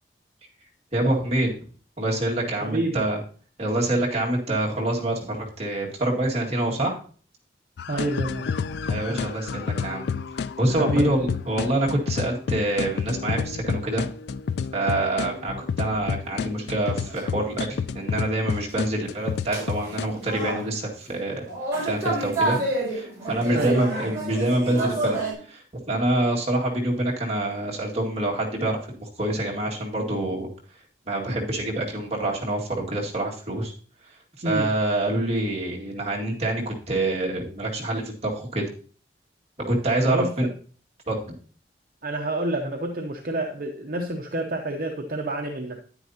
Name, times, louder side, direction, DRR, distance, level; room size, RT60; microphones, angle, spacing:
voice 1, 0.9-1.6 2.0-3.2 3.6-7.0 8.9-10.1 10.6-14.1 14.7-21.4 21.9-22.6 22.9-25.2 25.5-30.5 31.1-33.7 34.4-38.6 39.7-40.5 41.1-41.3, right 1 dB, 35° right, -3 dB, 2.0 m, -26 dB
voice 2, 2.6-3.0 7.9-8.6 10.7-11.2 23.5-23.9 34.4-34.7 40.1-40.3 42.0-45.8, right 1 dB, 50° right, 3 dB, 0.8 m, -28 dB
sound 1, 7.8-20.1, left 6 dB, 65° left, 0.3 m, -30 dB
sound 2, 16.3-16.4 16.9-17.5 18.5-18.6 19.5-20.7 21.5-25.3, right 2 dB, 15° right, 5.2 m, -29 dB
9.7 x 9.4 x 2.8 m, 0.44 s
head